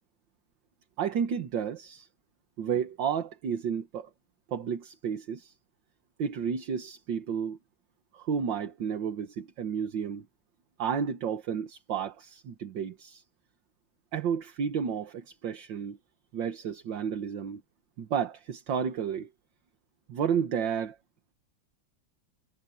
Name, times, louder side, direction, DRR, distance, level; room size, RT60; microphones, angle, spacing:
voice 1, 1.0-2.1 2.6-4.1 4.5-5.5 6.2-7.6 8.1-10.3 10.8-13.2 14.1-16.0 16.3-17.6 18.0-19.3 20.1-21.0, right 7 dB, 65° right, 2.0 m, -31 dB
omnidirectional pair, 2.2 m